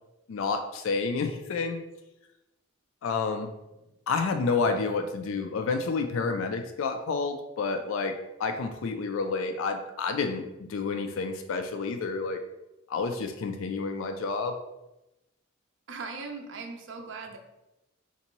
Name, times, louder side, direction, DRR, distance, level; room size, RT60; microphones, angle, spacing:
voice 1, 0.3-1.8 3.0-3.5 4.1-8.1 8.4-12.4 12.9-14.5, left 4 dB, 75° left, 7 dB, 0.3 m, -29 dB
voice 2, 15.9-17.4, right 4 dB, 60° right, 4 dB, 0.4 m, -39 dB
3.9 x 2.6 x 2.9 m, 0.94 s
head